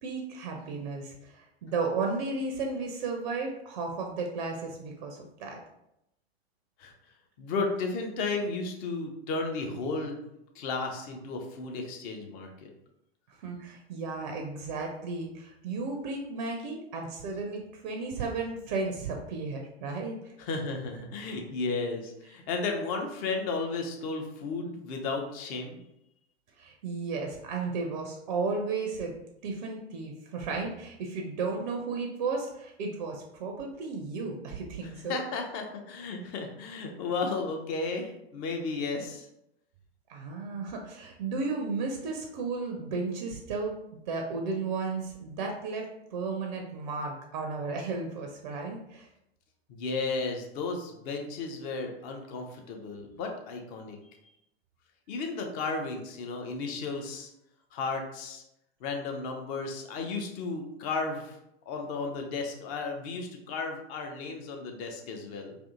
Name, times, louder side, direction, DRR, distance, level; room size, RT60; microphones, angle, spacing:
voice 1, 0.0-5.6 13.4-20.2 26.6-29.1 29.4-35.2 40.1-45.9 46.1-49.1, right 4 dB, 45° right, 2 dB, 0.4 m, -34 dB
voice 2, 7.4-10.2 10.6-12.7 20.4-25.8 34.8-39.3 49.7-54.0 55.1-57.3 57.7-58.4 58.8-61.4 61.7-65.6, left 3 dB, 25° left, 3 dB, 0.4 m, -34 dB
2.5 x 2.5 x 2.4 m, 0.82 s
figure-of-eight pair, 90°, 32 cm